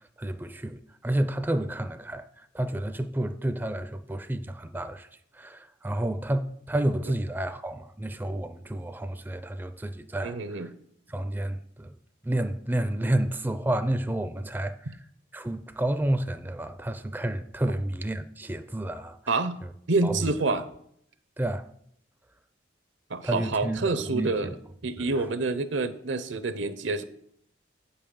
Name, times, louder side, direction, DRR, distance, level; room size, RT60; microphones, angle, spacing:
voice 1, 0.2-5.1 5.3-10.7 11.1-11.9 12.2-15.0 15.3-19.3 20.0-20.3 21.4-21.7 23.2-23.8 24.1-24.5 25.0-25.3, right 1 dB, 10° right, 0.4 m, -30 dB
voice 2, 10.2-10.7 19.3-19.6 19.9-20.7 23.1-24.5 24.8-27.0, right 3 dB, 75° right, 0.7 m, -27 dB
8.8 x 5.5 x 7.0 m
head